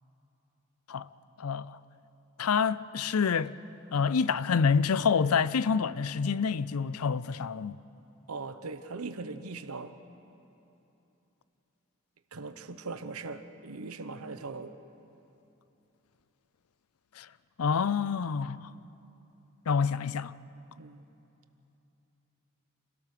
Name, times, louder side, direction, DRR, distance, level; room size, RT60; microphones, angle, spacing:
voice 1, 1.4-1.8 2.4-3.6 3.9-7.8 17.2-17.3 17.6-18.7 19.7-20.3, left 6 dB, 85° left, 0.5 m, -27 dB
voice 2, 8.3-9.9 12.3-14.7 20.8-21.0, right 3 dB, 85° right, 1.0 m, -40 dB
27.0 x 17.0 x 6.7 m
head